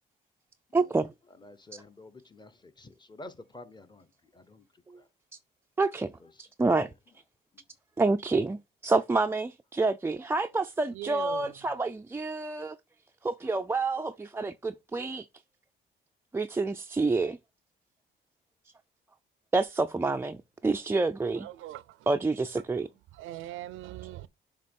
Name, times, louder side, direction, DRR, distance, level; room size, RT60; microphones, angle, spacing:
voice 1, 0.7-1.1 1.7-1.8 5.8-6.1 6.4-6.9 8.0-12.8 13.2-15.3 16.3-17.4 19.5-20.4 20.6-21.5 22.1-22.9, right 3 dB, 10° right, 0.3 m, -28 dB
voice 2, 1.4-4.1 4.3-4.7 4.9-5.1 7.5-7.6, left 2 dB, 20° left, 0.8 m, -49 dB
voice 3, 10.9-11.6 21.4-22.0 23.1-24.3, right 14 dB, 85° right, 0.5 m, -40 dB
6.7 x 2.9 x 5.3 m
cardioid pair, 90°, 20 cm